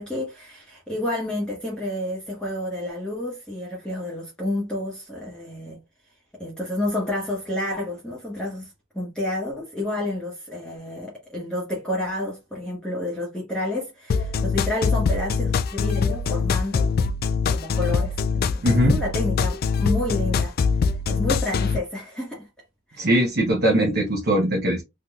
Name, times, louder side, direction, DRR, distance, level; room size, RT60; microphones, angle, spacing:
voice 1, 0.0-5.8 6.4-17.1 17.5-20.5 21.1-22.5 22.9-23.1, left 1 dB, 5° left, 1.1 m, -30 dB
sound 1, 14.1-21.8, left 5 dB, 50° left, 0.3 m, -23 dB
voice 2, 18.6-19.0 23.0-24.8, right 1 dB, 50° right, 1.0 m, -20 dB
3.6 x 2.9 x 2.4 m
head